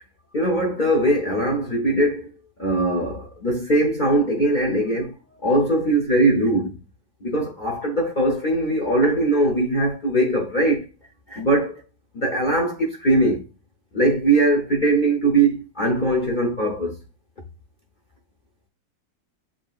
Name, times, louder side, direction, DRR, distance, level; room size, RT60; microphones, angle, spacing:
voice 1, 0.3-2.3 2.6-5.1 5.4-6.8 7.2-10.9 11.3-11.8 12.1-13.4 13.9-17.0, right 1 dB, 50° left, 0.6 m, -21 dB
7.3 x 2.8 x 2.4 m
omnidirectional pair, 2.0 m